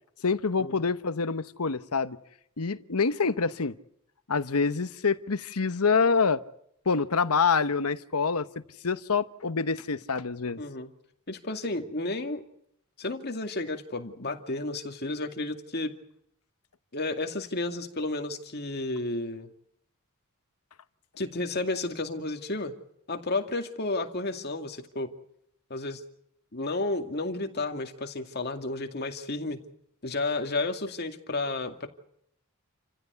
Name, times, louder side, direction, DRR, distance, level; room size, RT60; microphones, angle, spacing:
voice 1, 0.2-2.2 2.6-3.7 4.3-6.4 6.9-8.5 8.8-10.6, left 5 dB, 85° left, 13 dB, 1.0 m, -26 dB
voice 2, 10.6-10.9 11.3-12.4 13.0-15.9 16.9-19.5 21.2-22.7 23.1-25.1 25.7-26.0 26.5-29.6 30.0-31.9, left 2 dB, 45° left, 5 dB, 2.3 m, -32 dB
29.0 x 15.5 x 8.2 m, 0.74 s
head